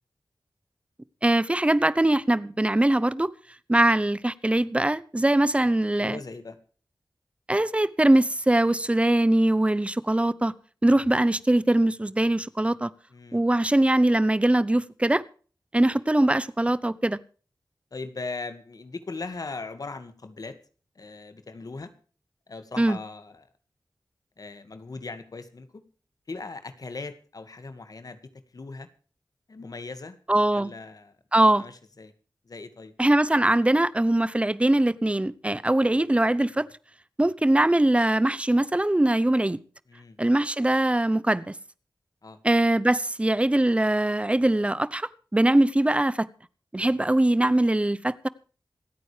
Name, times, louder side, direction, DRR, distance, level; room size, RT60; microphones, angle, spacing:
voice 1, 1.2-3.3 3.7-6.2 7.5-10.5 10.8-12.9 13.3-15.2 15.7-17.2 22.8-23.0 30.3-30.7 31.3-31.6 33.0-36.7 37.2-39.6 40.2-41.5 42.4-46.3 46.7-48.3, right 1 dB, 15° right, 0.8 m, -22 dB
voice 2, 5.6-6.6 13.1-13.4 17.9-20.6 21.0-21.9 22.5-23.5 24.4-25.8 26.3-28.2 28.5-28.9 29.5-30.2 30.5-31.1 31.6-32.1 32.5-32.9 35.8-35.9 39.9-40.2 42.2-42.4, left 3 dB, 60° left, 1.9 m, -39 dB
27.0 x 9.3 x 3.4 m
wide cardioid pair, 100°, 7 cm